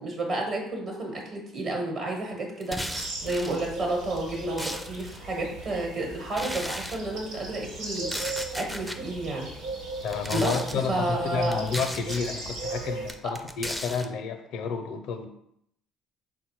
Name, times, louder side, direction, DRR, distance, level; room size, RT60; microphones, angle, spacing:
voice 1, 0.0-8.1 8.5-9.5 10.3-11.6, right 2 dB, 55° right, 0 dB, 1.1 m, -31 dB
sound 1, 2.6-3.6 4.2-5.2 6.3-7.0 8.0-9.0 10.0-10.8 11.5-12.3 13.1-14.1, equal, 5° right, 0.4 m, -36 dB
sound 2, 2.9-13.1, right 2 dB, 85° right, 1.1 m, -38 dB
voice 2, 10.0-15.3, left 5 dB, 70° left, 6 dB, 0.5 m, -30 dB
3.9 x 2.2 x 4.5 m, 0.74 s
supercardioid pair, 70°, 0 cm